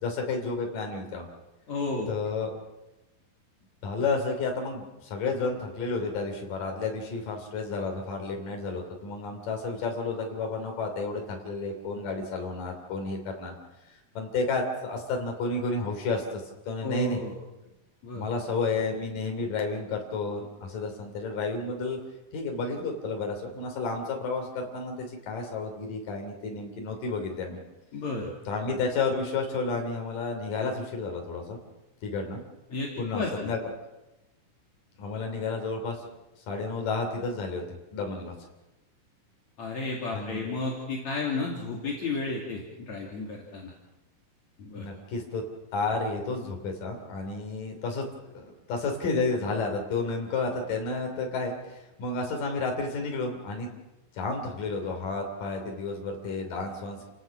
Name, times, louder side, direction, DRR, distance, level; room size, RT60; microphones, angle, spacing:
voice 1, 0.0-1.3 2.1-2.5 3.8-13.5 14.2-17.2 18.1-22.0 22.3-27.6 28.5-31.6 32.0-32.4 33.0-33.6 35.0-36.1 36.5-37.6 37.9-38.3 40.1-40.5 44.7-45.4 45.7-48.1 48.3-53.7 54.1-57.1, left 3 dB, 75° left, 2 dB, 4.7 m, -31 dB
voice 2, 1.7-2.1 16.8-17.3 18.0-18.3 27.9-28.3 32.7-33.5 39.6-43.7 44.6-44.9, left 3 dB, 55° left, -2 dB, 3.9 m, -32 dB
30.0 x 18.0 x 6.0 m, 1.0 s
omnidirectional pair, 3.9 m